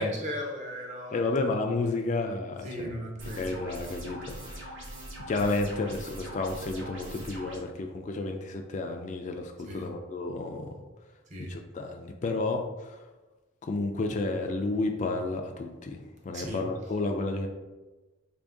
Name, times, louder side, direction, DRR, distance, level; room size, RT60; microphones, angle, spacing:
voice 1, 0.0-1.3 2.6-3.5 7.2-7.3 9.6-9.9 11.3-11.5 16.3-16.6, equal, 35° right, 1 dB, 0.6 m, -37 dB
voice 2, 1.1-2.9 3.4-4.7 5.3-10.7 11.5-13.1 13.6-17.5, left 3 dB, 35° left, 4 dB, 0.3 m, -31 dB
sound 1, 3.2-7.6, right 1 dB, 70° right, 0.9 m, -42 dB
3.6 x 2.6 x 3.5 m, 1.1 s
head